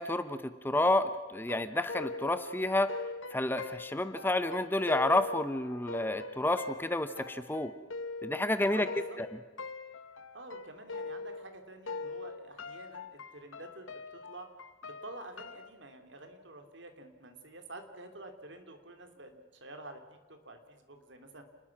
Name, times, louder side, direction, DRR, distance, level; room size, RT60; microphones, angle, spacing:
voice 1, 0.0-2.9 3.3-7.7 8.2-8.9 9.2-9.3, left 1 dB, 10° left, 11 dB, 0.8 m, -30 dB
sound 1, 1.4-11.6 11.9-15.7, left 3 dB, 85° left, 1.2 m, -42 dB
voice 2, 8.7-9.2 10.3-14.5 14.8-20.0 20.3-21.4, right 2 dB, 65° right, 6 dB, 2.9 m, -49 dB
29.0 x 20.5 x 6.0 m, 1.4 s
head